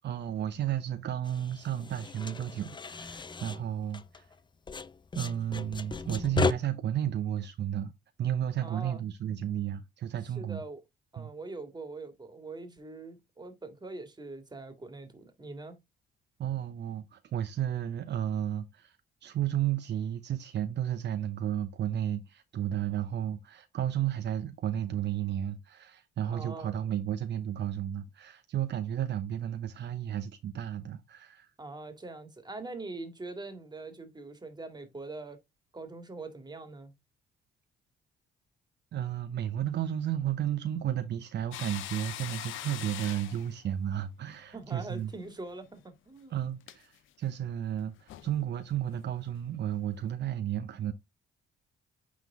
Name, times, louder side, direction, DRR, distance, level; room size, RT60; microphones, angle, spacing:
voice 1, 0.0-4.2 5.1-7.9 8.2-10.6 11.2-11.3 16.4-19.0 19.2-31.5 38.9-45.1 46.3-50.9, right 10 dB, 60° right, 0.8 m, -33 dB
sound 1, 1.2-4.4 4.7-6.5, left 4 dB, 25° left, 0.5 m, -35 dB
voice 2, 8.6-9.0 10.4-10.8 11.1-15.8 26.3-26.8 31.6-35.4 35.7-36.9 44.5-46.4, right 3 dB, 20° right, 2.1 m, -43 dB
sound 2, 41.5-45.0 45.3-45.5 46.6-46.8 47.8-47.9 48.1-48.4 48.7-48.8 49.4-49.5, left 13 dB, 80° left, 0.7 m, -42 dB
9.3 x 3.8 x 3.6 m
cardioid pair, 90°, 20 cm